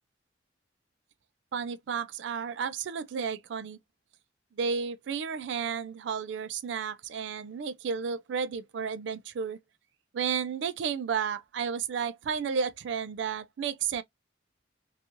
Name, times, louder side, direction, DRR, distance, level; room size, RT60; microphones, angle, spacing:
voice 1, 1.5-3.8 4.6-9.6 10.1-14.0, right 6 dB, 70° right, 0.3 m, -32 dB
2.5 x 2.3 x 2.7 m
head